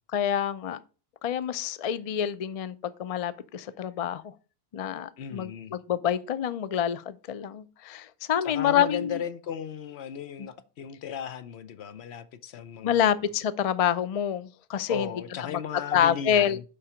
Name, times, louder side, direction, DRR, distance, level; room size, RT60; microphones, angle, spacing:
voice 1, 0.1-0.8 1.2-2.7 3.0-4.3 4.7-9.2 12.8-15.1 15.5-15.6 15.9-16.6, left 9 dB, 45° left, 0.5 m, -27 dB
voice 2, 5.2-5.8 8.4-13.0 14.9-16.6, left 8 dB, 80° left, 1.0 m, -36 dB
7.2 x 5.0 x 5.0 m
omnidirectional pair, 1.1 m